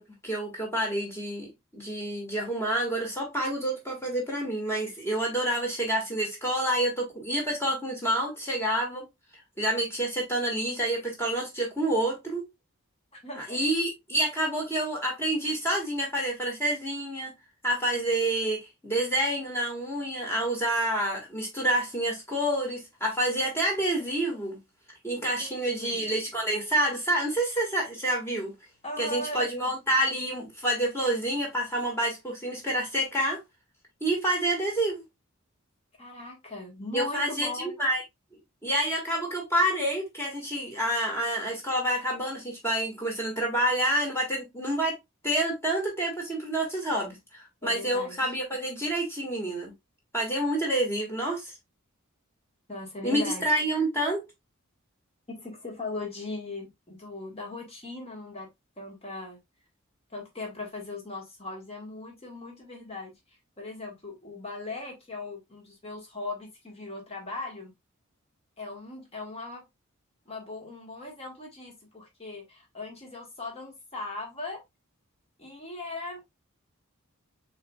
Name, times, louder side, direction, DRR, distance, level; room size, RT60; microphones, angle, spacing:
voice 1, 0.0-9.1 9.6-12.5 13.4-17.3 17.6-24.6 25.0-28.5 29.0-33.4 34.0-35.0 36.9-38.0 38.6-45.0 45.2-49.7 50.1-51.5 53.0-54.2, right 1 dB, 10° left, 1.8 m, -28 dB
voice 2, 13.1-13.6 25.4-26.0 28.8-29.5 36.0-37.7 47.6-48.2 52.7-53.6 55.3-58.5 58.8-59.4 60.1-63.1 63.6-67.7 68.6-69.6 70.2-74.6 75.4-76.2, left 2 dB, 30° left, 1.5 m, -39 dB
6.5 x 3.4 x 2.3 m
head